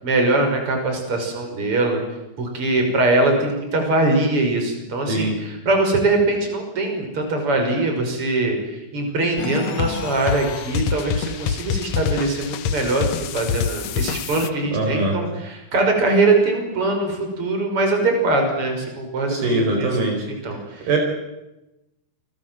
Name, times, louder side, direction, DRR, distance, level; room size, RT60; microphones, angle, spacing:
voice 1, 0.0-2.0 2.4-20.0 20.3-20.9, right 2 dB, 35° right, 4 dB, 6.6 m, -22 dB
sound 1, 9.4-14.5, left 7 dB, 80° left, 1.5 m, -26 dB
voice 2, 14.7-15.1 19.3-20.2 20.9-21.0, right 2 dB, 70° right, 3 dB, 6.7 m, -21 dB
29.0 x 23.5 x 7.8 m, 0.95 s
omnidirectional pair, 4.5 m